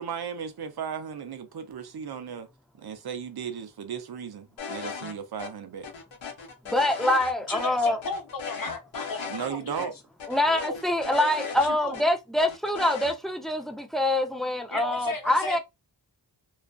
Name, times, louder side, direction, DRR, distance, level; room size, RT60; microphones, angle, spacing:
voice 1, 0.0-2.5 2.8-5.9 9.3-9.9, right 7 dB, 55° right, 0.6 m, -35 dB
sound 1, 4.6-5.1 5.4-5.5 5.8-7.3 7.6-7.7 8.0-9.5 9.8-9.9 10.2-12.0 12.4-13.1, left 6 dB, 80° left, 0.7 m, -37 dB
voice 2, 6.7-8.0 10.3-15.6, left 1 dB, ahead, 0.4 m, -25 dB
voice 3, 7.5-9.9 10.4-10.8 11.2-12.0 14.7-15.6, left 3 dB, 50° left, 0.7 m, -35 dB
2.4 x 2.3 x 2.2 m
wide cardioid pair, 40°, 46 cm